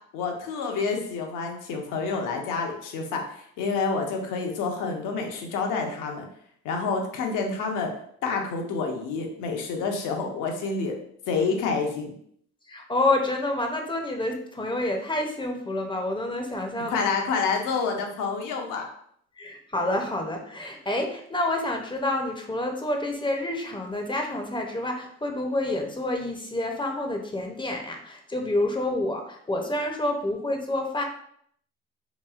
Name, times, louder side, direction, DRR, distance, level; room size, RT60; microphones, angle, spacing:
voice 1, 0.1-6.2 6.6-7.9 8.2-11.0 11.3-12.1 16.9-18.9, left 4 dB, 75° left, 2 dB, 0.7 m, -28 dB
voice 2, 12.7-17.0 19.4-31.0, left 1 dB, 15° left, 2 dB, 0.5 m, -28 dB
3.0 x 2.6 x 2.3 m, 0.66 s
supercardioid pair, 70°, 32 cm